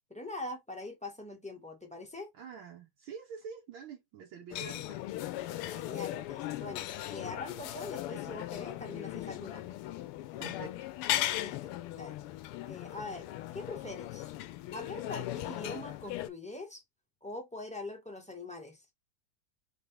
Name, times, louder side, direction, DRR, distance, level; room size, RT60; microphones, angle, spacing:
voice 1, 0.1-2.3 5.7-9.6 11.4-12.2 12.6-13.3 13.5-14.3 14.7-16.8 17.2-18.8, left 2 dB, 5° left, 0.6 m, -43 dB
voice 2, 2.4-5.0 10.4-10.9, right 6 dB, 70° right, 1.6 m, -46 dB
sound 1, 4.5-16.3, left 14 dB, 90° left, 1.5 m, -38 dB
4.0 x 3.9 x 3.4 m
omnidirectional pair, 2.4 m